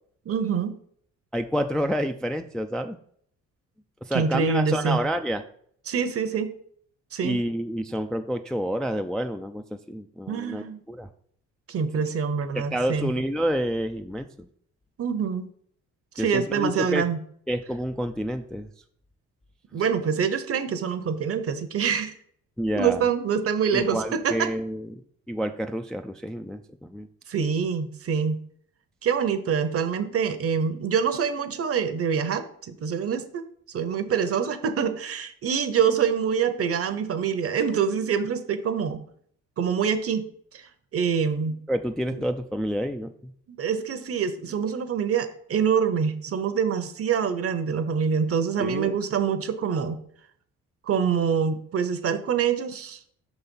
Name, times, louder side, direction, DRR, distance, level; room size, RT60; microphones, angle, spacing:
voice 1, 0.3-0.8 4.1-5.0 5.9-6.5 7.1-7.4 10.3-10.8 11.7-13.1 15.0-15.5 16.1-17.2 19.7-22.1 22.7-24.5 27.3-28.4 29.0-39.0 39.6-40.3 40.5-41.6 42.1-42.2 43.5-50.0 50.8-53.1, right 6 dB, 50° right, 10 dB, 0.8 m, -25 dB
voice 2, 1.3-3.0 4.0-5.4 7.2-11.1 12.5-14.5 16.2-17.0 17.5-18.7 22.6-23.1 23.7-25.0 25.3-27.1 41.7-43.3 48.6-49.0, equal, ahead, 6 dB, 0.3 m, -29 dB
5.5 x 4.1 x 5.3 m, 0.62 s
cardioid pair, 90°, 30 cm